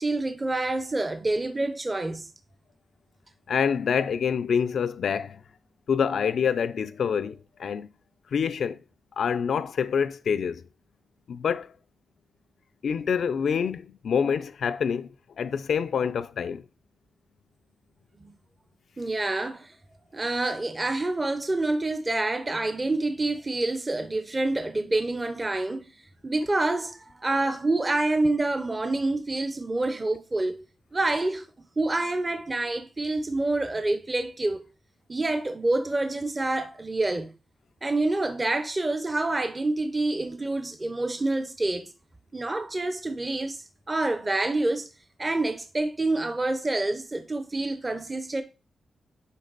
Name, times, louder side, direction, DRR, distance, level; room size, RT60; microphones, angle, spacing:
voice 1, 0.0-2.3 18.2-18.3 19.0-19.7 20.1-25.9 26.2-30.6 30.9-31.5 31.8-34.6 35.1-37.3 37.8-41.9 42.3-44.9 45.2-48.4, right 2 dB, 20° right, 0.7 m, -27 dB
voice 2, 3.5-5.4 5.9-7.9 8.3-8.8 9.2-10.6 11.3-11.7 12.8-16.6, left 7 dB, 70° left, 0.5 m, -26 dB
10.0 x 3.4 x 4.0 m
wide cardioid pair, 130°, 0 cm